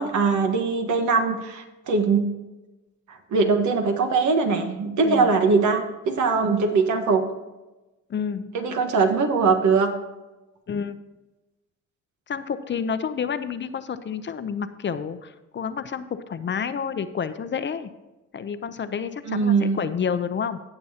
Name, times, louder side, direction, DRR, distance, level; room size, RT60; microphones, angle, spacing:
voice 1, 0.0-2.2 3.1-7.2 8.5-9.9 19.3-19.8, right 4 dB, 75° right, 5 dB, 1.4 m, -21 dB
voice 2, 8.1-8.5 10.7-11.0 12.3-17.9 18.3-20.6, left 6 dB, 40° left, 11 dB, 0.6 m, -29 dB
16.5 x 6.9 x 2.9 m, 1.1 s
cardioid pair, 90°, 30 cm